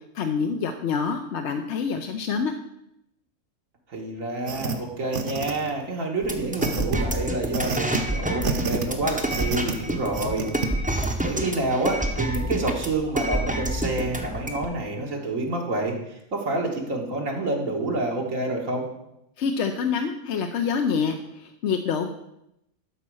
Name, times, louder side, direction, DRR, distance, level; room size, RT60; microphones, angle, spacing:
voice 1, 0.1-2.5 19.4-22.1, left 6 dB, 65° left, 5 dB, 0.9 m, -26 dB
voice 2, 3.9-10.5 10.9-18.9, right 2 dB, 75° right, -1 dB, 1.9 m, -28 dB
sound 1, 4.5-4.8 5.1-5.8 6.6-7.0 7.5-8.0 8.4-8.9 9.3-9.7 10.1-10.7, right 5 dB, 45° right, 0.9 m, -28 dB
sound 2, 6.2-14.7, right 1 dB, 5° right, 0.7 m, -28 dB
12.0 x 4.2 x 6.2 m, 0.83 s
omnidirectional pair, 1.4 m